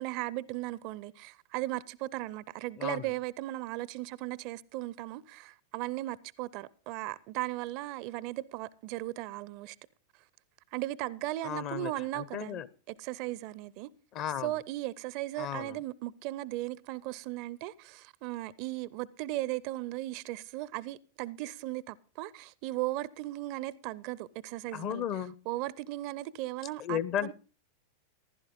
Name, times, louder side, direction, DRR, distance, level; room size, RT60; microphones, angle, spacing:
voice 1, 0.0-9.8 10.7-12.6 12.9-13.9 14.4-25.0 25.5-27.3, right 17 dB, 45° right, 0.5 m, -37 dB
voice 2, 11.4-12.7 14.1-14.5 15.4-15.8 24.7-25.4 26.8-27.3, left 10 dB, 40° left, 0.8 m, -34 dB
14.5 x 11.5 x 3.7 m
figure-of-eight pair, 90°, 0 cm